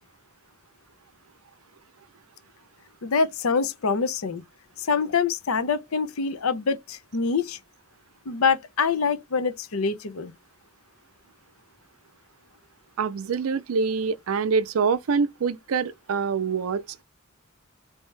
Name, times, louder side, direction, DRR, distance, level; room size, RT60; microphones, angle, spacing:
voice 1, 3.0-4.4 4.8-7.6 8.3-10.3, left 5 dB, 80° left, 0.6 m, -25 dB
voice 2, 13.0-17.0, right 5 dB, 80° right, 0.5 m, -25 dB
3.4 x 2.7 x 3.2 m
head